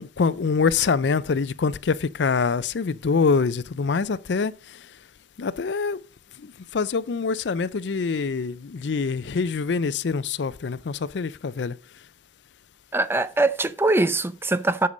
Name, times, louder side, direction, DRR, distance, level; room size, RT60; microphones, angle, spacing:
voice 1, 0.0-4.9 5.4-6.0 6.4-11.8, left 5 dB, 70° left, 0.5 m, -25 dB
voice 2, 12.9-14.9, right 2 dB, 15° right, 0.5 m, -22 dB
8.4 x 6.7 x 5.0 m
head